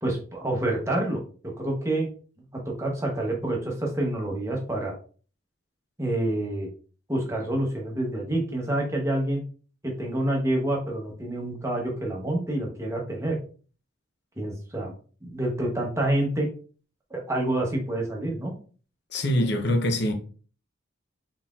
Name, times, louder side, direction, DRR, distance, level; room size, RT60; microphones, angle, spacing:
voice 1, 0.0-2.1 2.6-5.0 6.0-6.7 7.1-9.4 9.8-13.4 14.4-14.9 15.2-16.5 17.1-18.5, right 1 dB, 15° right, 0.9 m, -27 dB
voice 2, 19.1-20.1, left 1 dB, 55° left, 0.7 m, -24 dB
4.1 x 3.9 x 2.4 m
head